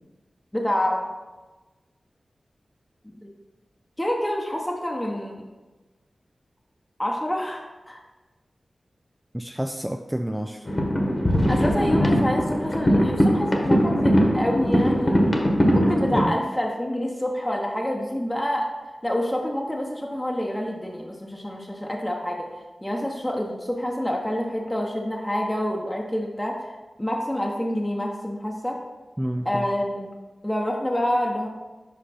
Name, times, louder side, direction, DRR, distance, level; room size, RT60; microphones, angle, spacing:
voice 1, 0.5-1.1 3.0-3.3 4.0-5.5 7.0-8.0 11.5-15.2 15.7-18.7 19.0-22.5 22.8-28.8 29.4-30.1 30.4-31.5, left 1 dB, 15° left, -1 dB, 0.8 m, -27 dB
voice 2, 9.3-10.6 16.1-16.4 29.2-29.6, equal, 10° right, 4 dB, 0.3 m, -29 dB
sound 1, 10.7-16.2, equal, 40° left, 1.2 m, -20 dB
5.3 x 5.1 x 4.2 m, 1.2 s
cardioid pair, 45°, 0 cm